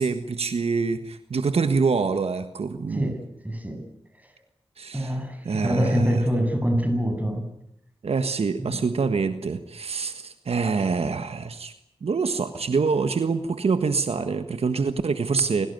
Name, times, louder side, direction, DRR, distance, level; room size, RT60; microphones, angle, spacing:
voice 1, 0.0-3.2 4.8-5.2 5.4-6.2 8.0-11.7 12.0-15.7, right 5 dB, 75° right, 9 dB, 1.5 m, -25 dB
voice 2, 3.4-3.8 4.9-5.4 5.6-7.4 8.6-8.8, equal, 15° right, 6 dB, 7.9 m, -24 dB
27.0 x 17.5 x 9.4 m, 0.75 s
cardioid pair, 55°, 10 cm